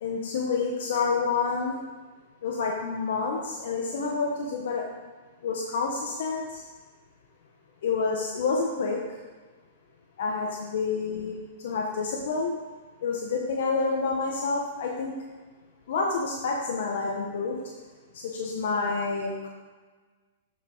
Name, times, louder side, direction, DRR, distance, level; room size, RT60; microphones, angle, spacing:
voice 1, 0.0-1.8 2.4-4.8 5.4-6.6 7.8-9.0 10.2-11.4 11.6-12.5 13.0-15.1 15.9-17.6 18.1-19.5, left 4 dB, 70° left, -1 dB, 1.1 m, -28 dB
7.7 x 5.4 x 4.6 m, 1.4 s
hypercardioid pair, 140°, 0 cm